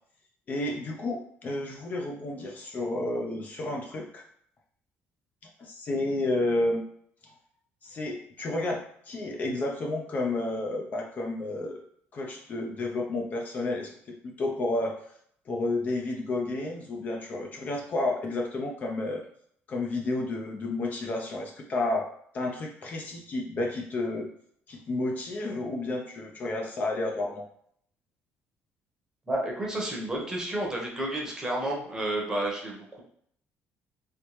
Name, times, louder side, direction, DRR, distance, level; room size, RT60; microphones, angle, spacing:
voice 1, 0.5-4.2 5.6-6.8 7.2-7.3 7.8-11.8 12.1-15.1 15.5-19.2 19.7-22.0 22.3-24.3 24.7-27.4, left 2 dB, 35° left, 0 dB, 0.5 m, -31 dB
voice 2, 29.3-33.0, right 1 dB, 15° right, -2 dB, 0.9 m, -31 dB
3.2 x 3.0 x 3.0 m, 0.66 s
cardioid pair, 150°, 5 cm